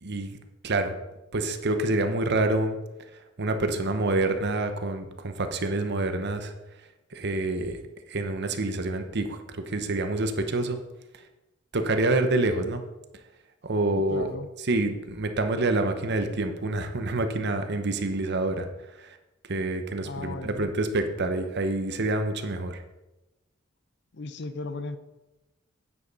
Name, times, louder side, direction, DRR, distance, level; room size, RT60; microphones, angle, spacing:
voice 1, 0.0-0.3 0.6-0.9 1.3-2.8 3.4-6.5 7.1-7.8 8.1-10.8 11.7-12.8 13.6-14.3 14.7-18.7 19.0-19.2 19.5-22.8, right 2 dB, 55° right, 7 dB, 0.9 m, -27 dB
voice 2, 14.1-14.5 20.0-20.7 24.1-25.0, left 3 dB, 55° left, 11 dB, 0.7 m, -36 dB
9.8 x 7.6 x 4.1 m, 1.0 s
head